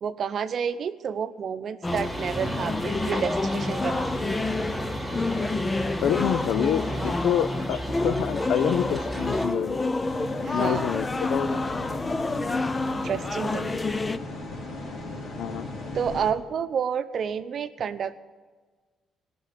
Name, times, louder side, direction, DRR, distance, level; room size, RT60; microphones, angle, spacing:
voice 1, 0.0-4.1 10.4-10.9 13.0-13.7 15.9-18.2, right 7 dB, 55° right, 11 dB, 0.7 m, -30 dB
sound 1, 1.8-14.2, left 3 dB, 20° left, 0.5 m, -29 dB
sound 2, 1.9-9.5, equal, 5° left, 2.8 m, -32 dB
voice 2, 6.0-9.8 10.5-11.7 15.4-15.7, left 10 dB, 80° left, 16 dB, 0.5 m, -27 dB
sound 3, 10.0-16.3, left 2 dB, 55° left, 2.8 m, -36 dB
17.0 x 6.1 x 9.9 m, 1.4 s
cardioid pair, 90°, 0 cm